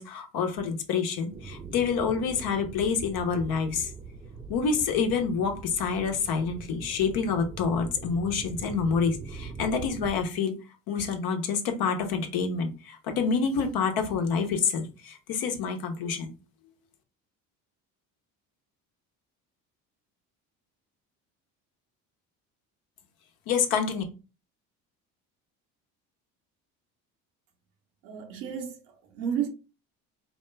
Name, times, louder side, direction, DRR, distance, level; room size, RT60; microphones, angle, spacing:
voice 1, 0.0-3.9 4.5-10.5 10.9-16.3 23.5-24.0, left 5 dB, 65° left, 1.0 m, -27 dB
sound 1, 1.3-10.2, right 4 dB, 15° right, 0.4 m, -42 dB
voice 2, 28.0-29.5, right 8 dB, 90° right, 1.1 m, -32 dB
4.6 x 2.2 x 3.2 m
supercardioid pair, 75°, 40 cm